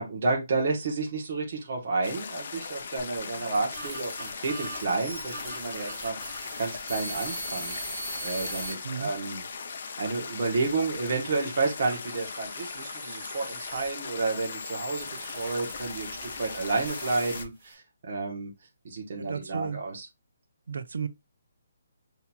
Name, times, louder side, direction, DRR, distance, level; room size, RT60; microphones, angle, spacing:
voice 1, 0.0-9.4 10.0-18.5 18.8-20.0, right 3 dB, 35° right, 0.9 m, -31 dB
sound 1, 2.0-17.4, left 5 dB, 40° left, 0.4 m, -39 dB
sound 2, 3.0-8.7 9.4-10.9 11.7-17.7, right 1 dB, 10° right, 1.4 m, -41 dB
voice 2, 19.2-19.8 20.7-21.1, right 6 dB, 65° right, 0.5 m, -33 dB
5.6 x 2.8 x 2.2 m
hypercardioid pair, 180°, 0 cm